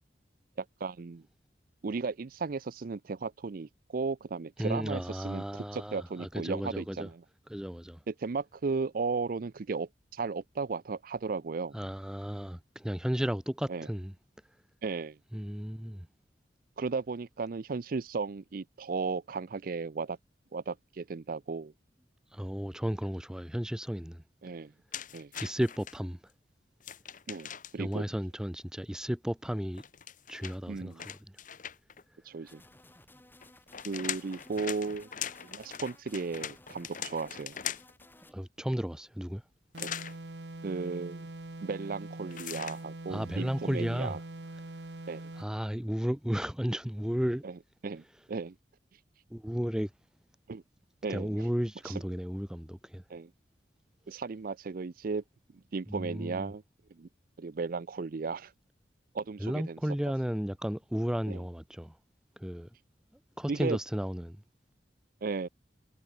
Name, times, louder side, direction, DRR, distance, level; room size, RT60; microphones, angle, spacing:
voice 1, 0.6-1.2 1.8-7.2 8.1-11.7 13.7-13.9 14.8-15.2 16.8-20.2 20.5-21.7 24.4-24.7 25.1-25.3 27.3-28.1 30.7-31.1 32.3-32.6 33.8-35.1 35.4-37.6 39.8-39.9 40.6-41.3 41.6-44.2 45.1-45.3 47.4-47.5 47.8-48.5 50.5-50.6 51.0-51.4 51.9-52.0 53.1-53.3 54.1-55.2 55.5-56.6 57.0-57.1 57.4-58.5 59.1-59.8 61.3-61.4 63.5-63.8 65.2-65.5, right 4 dB, 50° right, 0.5 m, -35 dB
voice 2, 4.6-7.1 7.5-8.0 11.7-14.1 15.3-16.1 22.3-24.2 25.4-26.2 27.8-29.8 30.3-31.2 34.3-34.4 38.2-39.4 43.1-44.2 45.4-47.4 49.3-49.9 51.1-53.0 55.9-56.5 59.4-61.9 62.4-62.7 63.4-64.4, equal, 5° right, 0.5 m, -33 dB
sound 1, 24.9-26.0 26.8-27.9 29.7-32.0 33.4-38.0 39.8-40.2 42.3-42.8, left 9 dB, 50° left, 1.4 m, -41 dB
sound 2, 32.5-38.3, left 2 dB, 10° left, 3.1 m, -58 dB
sound 3, 39.7-45.6, right 2 dB, 70° right, 1.5 m, -43 dB
head